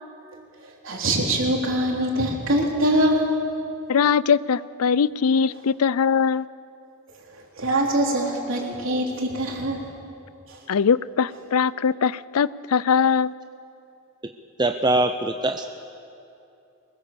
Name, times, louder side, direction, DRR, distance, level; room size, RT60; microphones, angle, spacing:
voice 1, 0.8-3.3 7.6-9.8, right 1 dB, 60° right, -1 dB, 3.8 m, -23 dB
voice 2, 3.9-6.5 10.7-13.3, left 6 dB, 85° left, 19 dB, 0.5 m, -21 dB
voice 3, 14.6-15.8, right 2 dB, 20° right, 6 dB, 0.6 m, -23 dB
23.5 x 21.5 x 7.0 m, 2.7 s
head